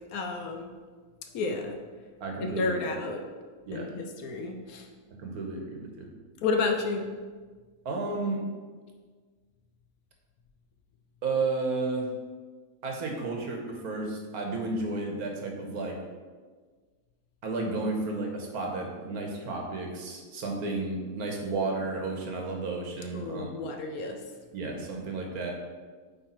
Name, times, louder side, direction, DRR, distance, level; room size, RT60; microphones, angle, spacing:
voice 1, 0.1-0.7 1.3-1.8 2.6-3.2 3.7-4.8 6.4-7.1 23.1-24.2, left 3 dB, 70° left, 4 dB, 1.0 m, -31 dB
voice 2, 2.2-2.9 3.6-3.9 5.2-6.1 7.8-8.4 11.2-12.1 12.8-16.0 17.4-23.5 24.5-25.6, right 3 dB, 65° right, 1 dB, 1.4 m, -32 dB
8.2 x 3.3 x 4.2 m, 1.5 s
omnidirectional pair, 1.7 m